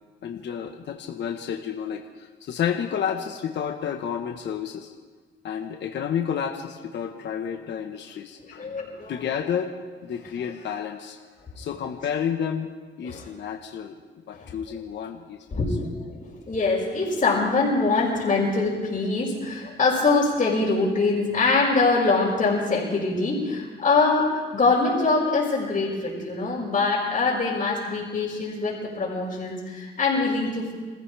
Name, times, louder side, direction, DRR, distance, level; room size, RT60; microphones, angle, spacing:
voice 1, 0.2-4.9 5.4-8.7 9.1-9.7 10.0-11.2 11.6-12.7 13.0-15.8, left 8 dB, 65° left, 3 dB, 1.2 m, -31 dB
voice 2, 8.4-9.3 13.0-13.3 14.4-14.5 15.5-30.7, left 3 dB, 40° left, -8 dB, 5.3 m, -24 dB
27.0 x 15.0 x 3.5 m, 1.5 s
cardioid pair, 90°, 20 cm